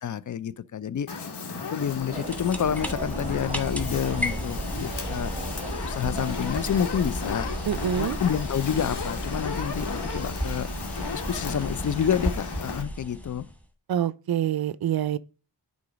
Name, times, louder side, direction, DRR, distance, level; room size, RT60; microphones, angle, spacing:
voice 1, 0.0-1.1 1.7-5.3 5.8-7.5 8.0-10.7 11.1-13.5, left 8 dB, 45° left, 0.5 m, -28 dB
Fire, 1.1-12.8, left 5 dB, 70° left, 1.6 m, -35 dB
sound 1, 1.9-13.6, right 1 dB, 5° left, 1.1 m, -34 dB
sound 2, 2.1-6.9, right 3 dB, 15° right, 0.7 m, -41 dB
voice 2, 7.7-8.2 13.9-15.2, right 10 dB, 60° right, 0.5 m, -26 dB
9.7 x 3.9 x 5.1 m
wide cardioid pair, 105°, 42 cm